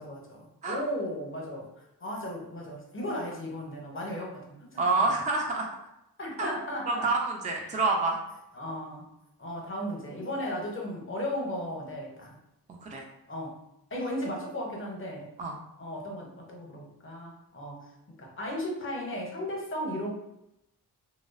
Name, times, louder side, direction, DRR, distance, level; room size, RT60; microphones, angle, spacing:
voice 1, 0.0-1.7 2.0-5.1 6.2-7.1 7.5-7.8 8.5-9.1 9.4-12.3 13.3-13.6 13.9-15.3 15.8-17.8 18.2-20.1, equal, 30° left, 0 dB, 0.7 m, -35 dB
voice 2, 4.8-5.7 6.4-6.5 6.9-8.2 12.8-13.0 15.4-15.5, right 3 dB, 20° right, 0 dB, 0.4 m, -27 dB
2.5 x 2.0 x 2.4 m, 0.87 s
cardioid pair, 55°, 40 cm